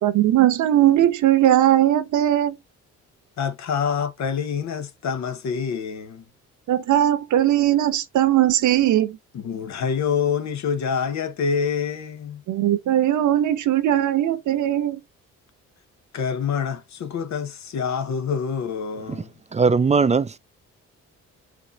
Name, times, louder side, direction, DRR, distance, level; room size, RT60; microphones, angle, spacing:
voice 1, 0.0-2.6 6.7-9.2 12.5-15.0, right 12 dB, 75° right, 1.0 m, -19 dB
voice 2, 3.4-6.2 9.3-12.4 16.1-19.3, left 6 dB, 65° left, 1.2 m, -26 dB
voice 3, 19.5-20.4, right 5 dB, 20° right, 0.5 m, -19 dB
4.7 x 2.8 x 4.0 m
cardioid pair, 90°, 30 cm